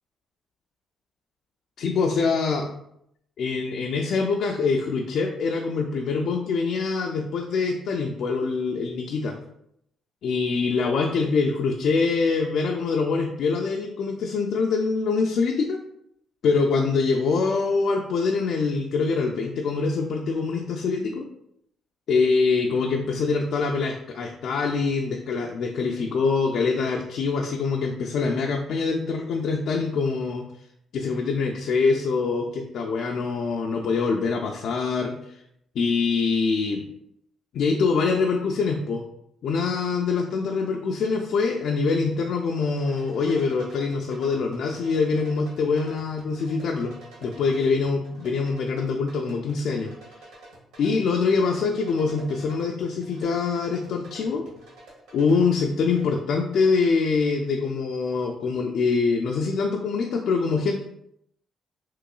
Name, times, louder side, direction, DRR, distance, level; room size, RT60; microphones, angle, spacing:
voice 1, 1.8-2.7 3.4-9.4 10.2-15.8 16.4-21.3 22.1-30.4 30.9-35.4 35.8-36.8 37.5-39.0 39.4-46.9 47.2-49.9 50.8-54.4 55.1-60.8, left 4 dB, 70° left, 1 dB, 0.3 m, -24 dB
sound 1, 42.0-56.9, right 1 dB, 90° right, 1.3 m, -49 dB
3.7 x 2.9 x 2.3 m, 0.75 s
cardioid pair, 90°, 0 cm